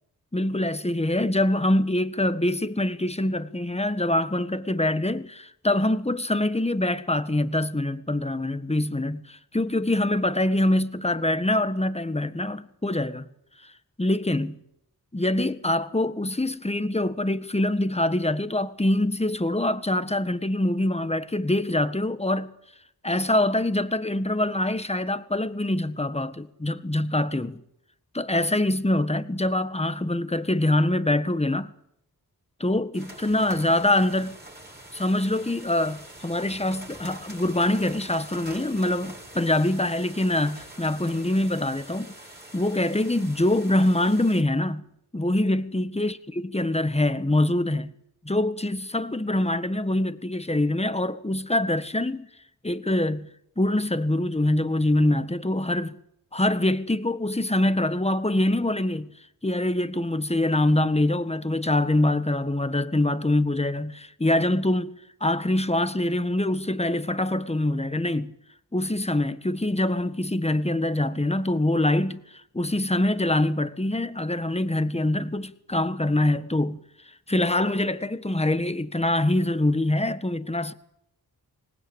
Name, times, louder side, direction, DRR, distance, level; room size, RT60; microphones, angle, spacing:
voice 1, 0.3-13.3 13.6-13.7 14.0-14.6 15.1-22.5 23.0-27.6 28.1-31.7 32.6-34.4 34.9-42.2 42.5-44.8 45.1-47.9 48.2-52.3 52.6-53.3 53.6-56.0 56.3-59.1 59.4-64.9 65.2-68.3 68.7-76.8 77.3-80.7, left 1 dB, 15° left, 1.6 m, -24 dB
sound 1, 32.9-44.4, right 1 dB, 25° right, 6.1 m, -45 dB
25.5 x 20.0 x 8.9 m
wide cardioid pair, 70°, 38 cm